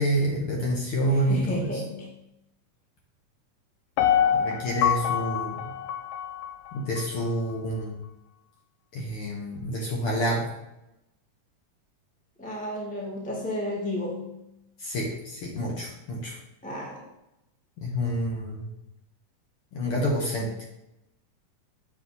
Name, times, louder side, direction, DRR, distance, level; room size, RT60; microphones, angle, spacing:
voice 1, 0.0-1.8 4.3-5.7 6.7-8.0 8.9-10.5 14.8-16.4 17.8-18.7 19.7-20.5, equal, 55° left, -2 dB, 1.7 m, -28 dB
voice 2, 1.1-2.1 12.4-14.3 16.6-17.0, left 1 dB, 5° left, -3 dB, 0.5 m, -32 dB
Piano, 4.0-7.0 7.5-7.6, left 9 dB, 80° left, 1.6 m, -26 dB
8.3 x 5.9 x 4.1 m, 0.89 s
omnidirectional pair, 3.8 m